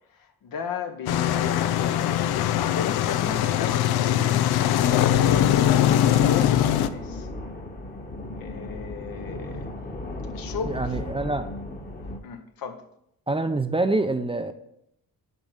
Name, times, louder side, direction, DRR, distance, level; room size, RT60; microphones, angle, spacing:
voice 1, 0.0-7.3 8.3-9.7 10.3-11.0 12.2-12.8, left 6 dB, 65° left, 1.1 m, -35 dB
sound 1, 1.1-6.9, left 11 dB, 85° left, 0.5 m, -21 dB
sound 2, 5.1-12.2, left 2 dB, 25° left, 1.2 m, -35 dB
voice 2, 10.6-11.5 13.3-14.5, right 2 dB, 15° right, 0.6 m, -26 dB
7.4 x 4.9 x 5.6 m
cardioid pair, 80°, 37 cm